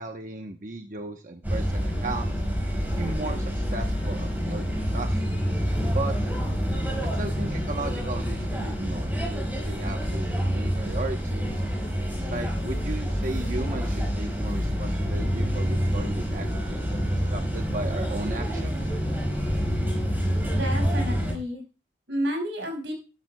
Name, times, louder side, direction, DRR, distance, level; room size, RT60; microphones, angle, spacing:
voice 1, 0.0-2.3 3.0-5.2 5.9-6.2 7.1-11.5 12.3-18.8, right 2 dB, 45° right, 4 dB, 1.0 m, -36 dB
sound 1, 1.4-21.3, equal, 10° right, 4.6 m, -27 dB
voice 2, 20.5-21.6 22.1-22.9, equal, 90° right, 3 dB, 5.4 m, -30 dB
13.5 x 12.5 x 2.3 m, 0.33 s
head